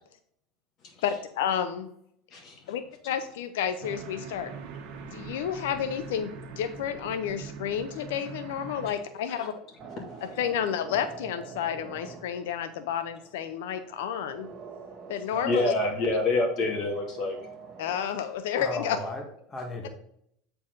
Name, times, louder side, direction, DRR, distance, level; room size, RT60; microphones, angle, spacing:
voice 1, 1.0-1.9 2.7-4.5 5.1-9.5 10.4-14.5 15.1-15.7 17.8-19.0, left 9 dB, 85° left, 10 dB, 0.5 m, -31 dB
voice 2, 2.3-2.8 8.9-9.0 9.3-9.5 10.0-10.3 15.4-17.4, left 2 dB, 45° left, -1 dB, 2.4 m, -28 dB
sound 1, 3.8-8.9, right 5 dB, 55° right, 1.3 m, -42 dB
sound 2, 8.7-18.3, right 6 dB, 35° right, 2.2 m, -45 dB
voice 3, 18.6-19.9, left 2 dB, 20° left, 2 dB, 1.5 m, -35 dB
8.5 x 4.6 x 3.8 m, 0.70 s
supercardioid pair, 130°, 0 cm